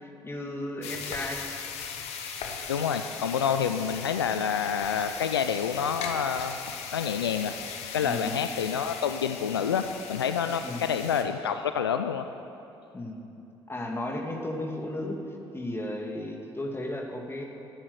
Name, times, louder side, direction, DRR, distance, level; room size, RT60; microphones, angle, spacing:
voice 1, 0.0-1.5 8.0-8.4 10.6-10.9 12.9-13.2 13.7-15.2 15.5-17.4, left 1 dB, 20° left, 2 dB, 2.1 m, -34 dB
sound 1, 0.8-11.2, left 6 dB, 60° left, 1.2 m, -39 dB
voice 2, 2.7-6.6 6.9-12.3, left 7 dB, 85° left, 9 dB, 0.4 m, -28 dB
12.5 x 9.9 x 7.9 m, 2.8 s
figure-of-eight pair, 50°, 12 cm